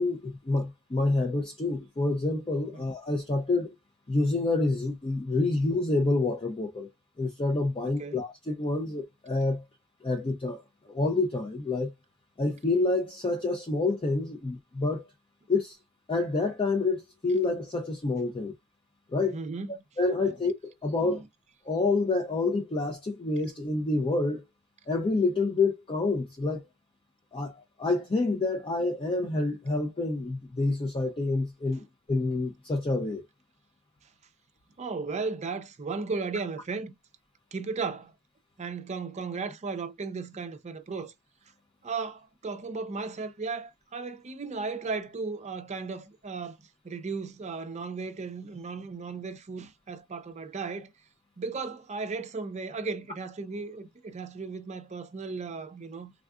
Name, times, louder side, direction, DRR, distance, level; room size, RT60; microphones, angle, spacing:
voice 1, 0.0-3.7 4.1-6.9 7.2-9.6 10.0-10.6 10.9-11.9 12.4-15.0 15.5-15.8 16.1-18.5 19.1-19.4 20.0-21.2 21.7-24.4 24.9-26.6 27.3-27.5 27.8-33.2, left 3 dB, 25° left, 0.4 m, -28 dB
voice 2, 19.3-19.8 20.2-20.3 20.9-21.3 34.8-36.9 37.5-38.1 38.6-41.1 41.8-46.6 46.8-50.9 51.4-56.1, right 4 dB, 30° right, 0.5 m, -35 dB
3.5 x 2.3 x 2.3 m
head